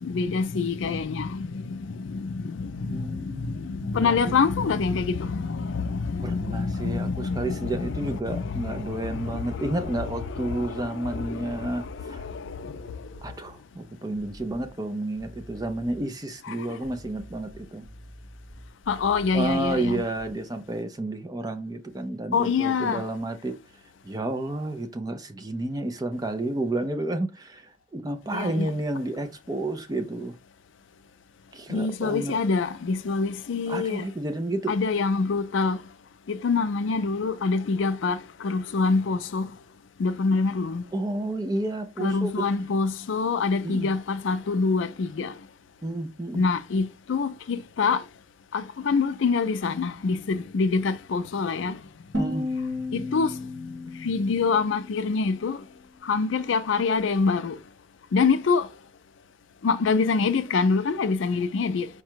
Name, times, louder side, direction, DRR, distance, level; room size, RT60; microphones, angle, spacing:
voice 1, 0.0-13.0 16.4-16.6 18.9-20.0 22.3-23.0 28.3-28.7 31.7-34.1 34.7-35.8 36.3-39.5 40.0-40.8 42.0-45.3 46.3-48.0 48.5-51.8 52.6-53.7 53.9-55.6 56.0-57.6 58.1-58.7 59.6-61.9, left 4 dB, 65° left, 0.4 m, -26 dB
voice 2, 2.8-4.4 6.2-12.2 13.2-17.9 19.3-23.6 24.0-30.4 31.5-32.4 33.7-34.7 40.9-42.3 43.6-43.9 45.8-46.4 52.1-52.5, right 1 dB, 20° right, 0.4 m, -31 dB
sound 1, 10.5-10.8 11.4-13.4 14.1-14.9 15.2-16.1 16.8-20.4, equal, 40° right, 2.5 m, -47 dB
sound 2, 52.1-55.1, left 2 dB, 60° right, 1.7 m, -33 dB
4.8 x 2.2 x 4.5 m
head